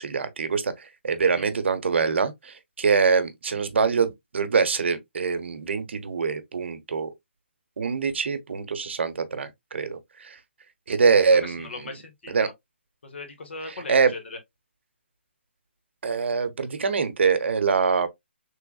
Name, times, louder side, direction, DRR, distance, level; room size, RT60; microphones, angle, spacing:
voice 1, 0.0-7.1 7.8-10.4 10.9-11.9 12.3-12.5 13.9-14.1 16.0-18.1, right 5 dB, 70° right, 0.8 m, -24 dB
voice 2, 11.3-12.5 13.0-14.4, left 3 dB, 70° left, 1.6 m, -39 dB
3.4 x 3.3 x 2.3 m
hypercardioid pair, 155°, 7 cm